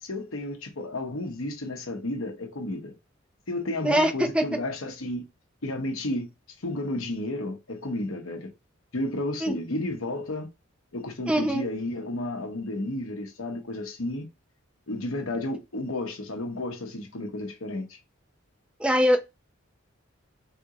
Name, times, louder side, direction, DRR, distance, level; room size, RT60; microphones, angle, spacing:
voice 1, 0.0-2.9 3.5-5.2 5.6-6.3 6.6-8.5 8.9-10.5 10.9-14.3 14.9-18.0, left 1 dB, 90° left, 1.1 m, -32 dB
voice 2, 3.8-4.4 9.4-9.5 11.3-11.6 18.8-19.2, equal, 5° right, 0.6 m, -22 dB
3.7 x 3.4 x 3.0 m
head